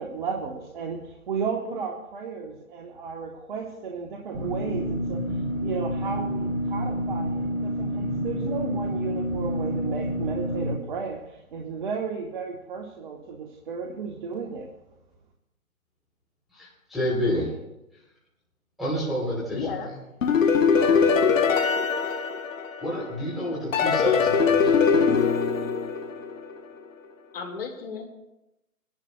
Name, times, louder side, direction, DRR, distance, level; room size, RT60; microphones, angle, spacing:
voice 1, 0.0-5.2 5.6-14.7, right 5 dB, 35° right, 1 dB, 1.1 m, -34 dB
sound 1, 4.3-10.7, equal, 60° right, 4.5 m, -28 dB
voice 2, 16.5-17.5 18.8-19.9 20.7-21.3 22.8-25.1, equal, ahead, -9 dB, 3.3 m, -29 dB
voice 3, 19.5-20.0 27.3-28.1, left 5 dB, 40° left, 3 dB, 2.0 m, -34 dB
sound 2, 20.2-23.1 23.7-26.6, left 6 dB, 65° left, 1.1 m, -22 dB
24.0 x 10.5 x 2.3 m, 0.91 s
hypercardioid pair, 145°, 43 cm